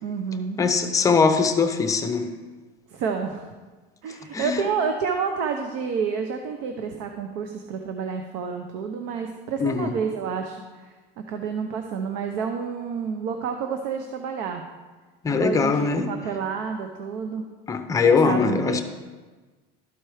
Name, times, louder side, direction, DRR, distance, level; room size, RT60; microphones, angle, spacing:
voice 1, 0.0-0.6 2.9-3.5 4.0-14.6 15.3-17.4 18.0-18.8, right 6 dB, 70° right, 5 dB, 0.7 m, -29 dB
voice 2, 0.6-2.3 4.3-4.6 9.6-9.9 15.2-16.1 17.7-18.8, left 5 dB, 15° left, 7 dB, 0.6 m, -21 dB
12.5 x 4.4 x 4.8 m, 1.3 s
cardioid pair, 150°, 20 cm